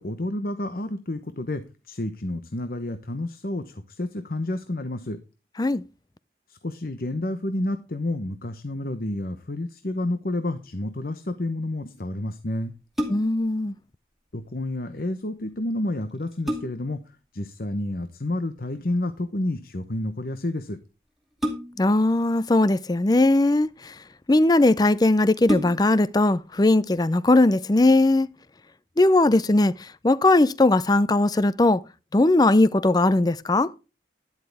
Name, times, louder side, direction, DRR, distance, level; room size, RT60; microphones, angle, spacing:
voice 1, 0.0-5.2 6.5-12.7 14.3-17.0 17.3-20.8, left 1 dB, 55° left, 1.0 m, -30 dB
sound 1, 12.7-13.5 15.5-15.6 16.1-17.0 18.6-18.9 21.4-22.0 23.0-23.7 24.4-24.5 24.8-24.9 25.4-26.1 26.6-26.7, equal, ahead, 2.3 m, -31 dB
voice 2, 13.1-13.7 21.8-23.9 24.3-28.3 29.0-31.8 32.1-33.7, left 2 dB, 20° left, 0.5 m, -19 dB
12.0 x 11.0 x 3.4 m
head